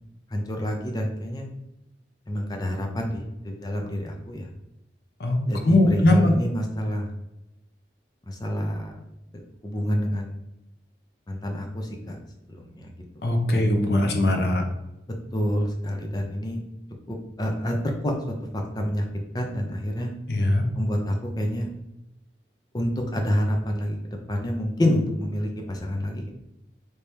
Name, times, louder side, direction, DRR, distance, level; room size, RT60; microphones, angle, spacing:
voice 1, 0.3-1.5 2.3-4.5 5.5-7.1 8.3-9.0 9.3-10.3 11.3-12.2 12.5-12.9 13.5-13.7 15.3-16.6 17.1-17.7 18.0-18.1 18.7-19.0 19.3-20.1 20.8-21.7 22.7-23.9 24.3-26.3, equal, 20° left, 2 dB, 0.5 m, -28 dB
voice 2, 5.6-6.3 13.2-14.6 20.3-20.6, left 1 dB, 60° left, 3 dB, 0.6 m, -20 dB
3.3 x 2.8 x 3.3 m, 0.91 s
head